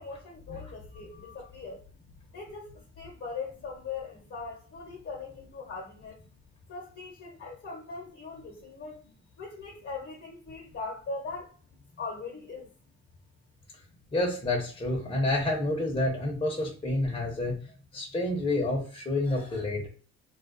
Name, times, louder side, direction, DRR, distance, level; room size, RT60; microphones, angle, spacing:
voice 1, 0.0-1.8 2.3-6.2 6.7-9.1 9.4-11.5 12.0-12.7, left 4 dB, 45° left, 0.9 m, -40 dB
voice 2, 14.1-17.6 17.9-19.9, left 2 dB, 20° left, 0.8 m, -29 dB
2.3 x 2.2 x 2.5 m
cardioid pair, 90°, 30 cm